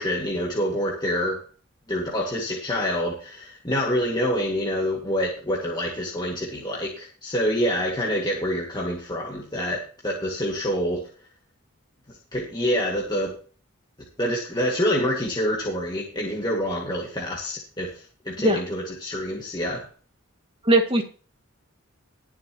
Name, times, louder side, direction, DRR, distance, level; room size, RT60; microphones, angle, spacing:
voice 1, 0.0-1.4 1.9-11.0 12.1-13.3 14.2-19.9, equal, 20° left, -3 dB, 2.2 m, -27 dB
voice 2, 20.6-21.0, right 1 dB, 25° right, 3 dB, 2.2 m, -19 dB
20.0 x 7.3 x 3.1 m, 0.38 s
head